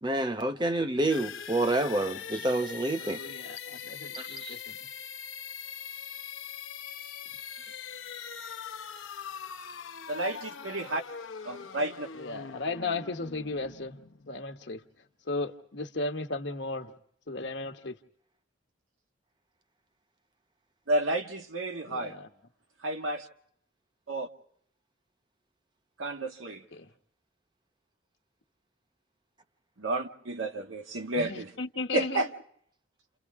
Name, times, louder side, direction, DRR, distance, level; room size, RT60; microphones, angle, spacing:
voice 1, 0.0-3.2 4.1-4.6, right 1 dB, 20° right, 1.0 m, -28 dB
sound 1, 1.1-14.8, left 7 dB, 75° left, 0.8 m, -42 dB
voice 2, 3.0-4.8 12.1-14.0 14.3-14.8 15.2-16.9 17.3-18.0 21.8-22.3 26.7-26.9 31.1-32.2, left 3 dB, 60° left, 1.2 m, -35 dB
voice 3, 10.1-11.0 11.4-12.1 20.9-22.2 22.8-23.3 24.1-24.3 26.0-26.6 29.8-31.5 31.9-32.3, right 2 dB, 90° right, 1.6 m, -31 dB
29.0 x 29.0 x 3.6 m
head